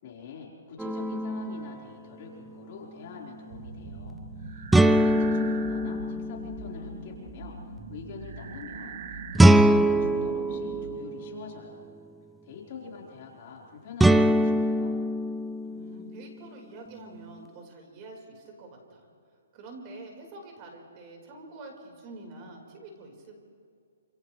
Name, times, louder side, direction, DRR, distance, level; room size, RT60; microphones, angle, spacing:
voice 1, 0.0-7.6 7.9-11.8 12.4-15.0, left 6 dB, 45° left, -3 dB, 4.6 m, -44 dB
sound 1, 0.8-1.7 4.7-6.9 9.4-11.5 14.0-16.2, right 1 dB, 5° right, 0.5 m, -23 dB
sound 2, 3.5-10.9, right 4 dB, 60° right, 3.1 m, -41 dB
voice 2, 5.0-5.4 15.6-19.1 19.5-23.3, right 2 dB, 30° right, 1 dB, 4.8 m, -46 dB
28.5 x 27.0 x 3.4 m, 2.4 s
hypercardioid pair, 155°, 0 cm